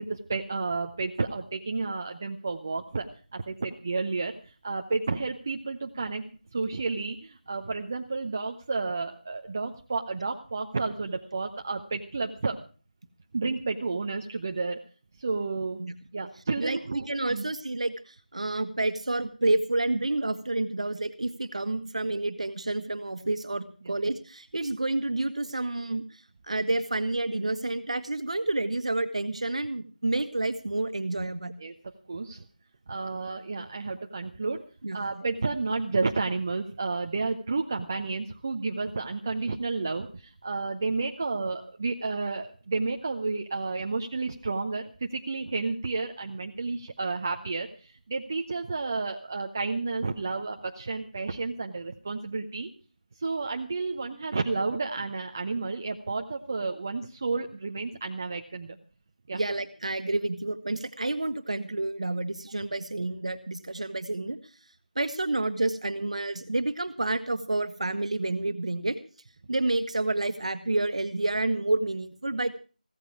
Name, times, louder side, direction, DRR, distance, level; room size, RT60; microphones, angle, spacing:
voice 1, 0.0-6.2 6.5-12.6 13.3-14.8 15.2-15.8 16.1-17.5 23.8-23.9 31.6-32.4 32.9-34.6 34.9-52.7 53.2-58.8 59.3-59.4, right 3 dB, 20° right, 5 dB, 0.7 m, -31 dB
voice 2, 16.6-26.0 26.5-31.5 34.8-35.3 59.3-64.4 64.9-69.0 69.5-72.6, right 2 dB, 45° right, 11 dB, 1.5 m, -29 dB
16.0 x 14.0 x 4.7 m, 0.37 s
figure-of-eight pair, 170°, 5 cm